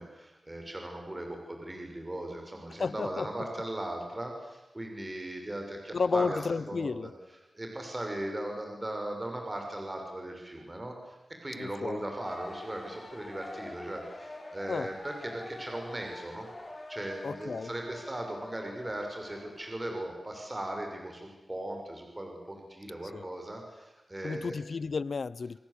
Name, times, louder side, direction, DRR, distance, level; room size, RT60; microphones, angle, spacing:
voice 1, 0.0-6.4 6.7-7.1 7.5-16.5 16.9-24.5, right 1 dB, 25° right, 2 dB, 6.2 m, -38 dB
voice 2, 2.8-3.3 5.9-7.1 11.5-12.0 14.7-14.9 17.2-17.7 23.1-23.2 24.2-25.6, left 4 dB, 70° left, 19 dB, 0.8 m, -32 dB
sound 1, 12.1-19.8, left 2 dB, 30° left, 4.4 m, -46 dB
28.5 x 21.0 x 8.5 m, 1.0 s
wide cardioid pair, 100°, 0 cm